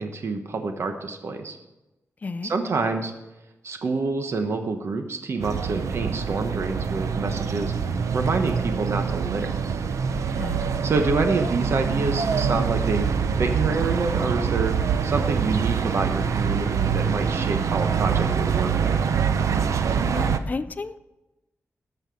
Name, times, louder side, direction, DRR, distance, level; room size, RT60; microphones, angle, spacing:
voice 1, 0.0-1.6 2.4-3.1 3.6-7.7 8.1-9.6 10.8-14.7 15.0-19.0, right 3 dB, 60° right, 6 dB, 1.1 m, -27 dB
voice 2, 2.2-2.5 10.1-10.7 20.1-21.0, left 3 dB, 30° left, 12 dB, 0.5 m, -33 dB
sound 1, 5.4-20.4, right 6 dB, 85° right, 0.7 m, -25 dB
13.5 x 5.7 x 6.9 m, 1.0 s
wide cardioid pair, 135°, 5 cm